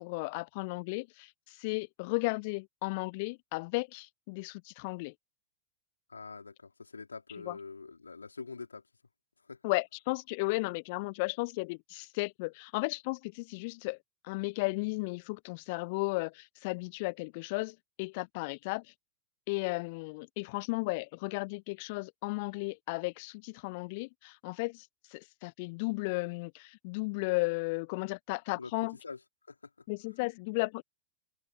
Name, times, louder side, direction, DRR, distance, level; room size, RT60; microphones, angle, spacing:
voice 1, 0.0-5.1 7.5-7.6 9.6-14.0 14.2-18.8 19.5-24.9 25.1-29.0 29.9-30.8, left 27 dB, 45° left, 1.1 m, -34 dB
voice 2, 6.1-8.8 9.4-9.6 28.5-29.2 29.5-29.7, left 4 dB, 75° left, 4.1 m, -45 dB
open air
figure-of-eight pair, 90°, 0 cm